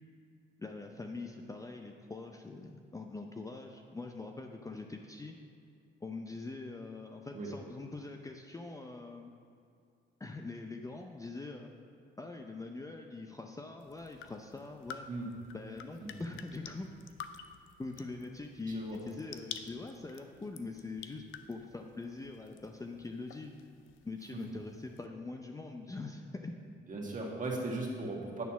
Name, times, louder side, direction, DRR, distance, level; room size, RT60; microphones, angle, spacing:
voice 1, 0.6-5.4 6.0-9.3 10.2-11.7 12.2-15.1 15.5-16.9 17.8-23.5 24.0-26.5, left 3 dB, 15° left, 3 dB, 0.5 m, -43 dB
sound 1, 13.8-25.1, left 8 dB, 85° left, 0.5 m, -51 dB
voice 2, 18.7-19.0 24.3-24.4 26.9-28.4, right 2 dB, 40° right, -2 dB, 1.7 m, -37 dB
9.3 x 4.1 x 5.8 m, 2.4 s
cardioid pair, 85°, 20 cm